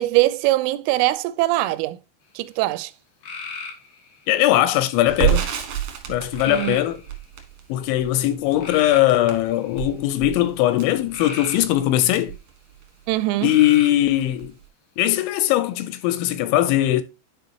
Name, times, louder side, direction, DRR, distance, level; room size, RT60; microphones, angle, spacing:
voice 1, 0.0-2.0 2.4-2.9 6.5-6.8 13.1-13.5, right 17 dB, 90° right, 3.1 m, -22 dB
sound 1, 3.2-4.2 6.4-7.2 8.6-9.9 11.1-12.3 13.4-14.1 15.8-16.3, left 4 dB, 60° left, 2.6 m, -36 dB
voice 2, 4.3-5.5 6.1-7.0 7.7-12.3 13.4-14.5 15.0-17.0, left 14 dB, 80° left, 2.8 m, -20 dB
Crackle, 5.1-13.1 13.5-13.6 13.9-14.6, right 11 dB, 70° right, 1.7 m, -29 dB
11.5 x 4.7 x 2.9 m
omnidirectional pair, 5.6 m